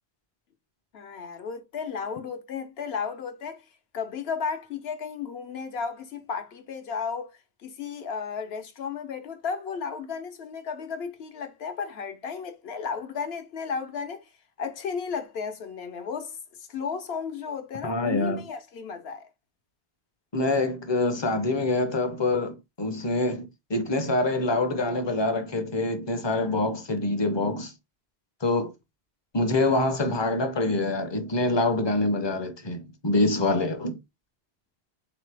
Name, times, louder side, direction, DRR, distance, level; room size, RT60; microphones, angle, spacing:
voice 1, 0.9-3.6 3.9-14.3 14.6-19.3, left 6 dB, 80° left, 1.0 m, -34 dB
voice 2, 17.8-18.4 20.3-27.7 28.4-28.7 29.3-34.0, left 2 dB, 35° left, 0.5 m, -25 dB
3.8 x 3.0 x 3.2 m
omnidirectional pair, 1.0 m